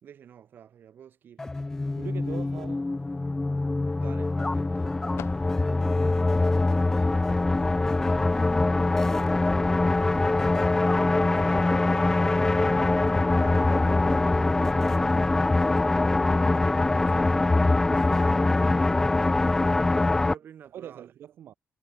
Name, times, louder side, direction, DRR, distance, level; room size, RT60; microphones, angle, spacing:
voice 1, 0.0-1.5 3.8-4.9 6.0-6.1 7.9-9.1 11.2-21.1, right 9 dB, 55° right, 4.1 m, -50 dB
sound 1, 1.4-20.3, left 2 dB, 10° left, 0.4 m, -23 dB
voice 2, 2.0-2.9 19.3-19.6 20.7-21.5, right 10 dB, 70° right, 2.5 m, -43 dB
sound 2, 2.4-13.9, left 11 dB, 80° left, 3.1 m, -53 dB
wide cardioid pair, 175°, 4 cm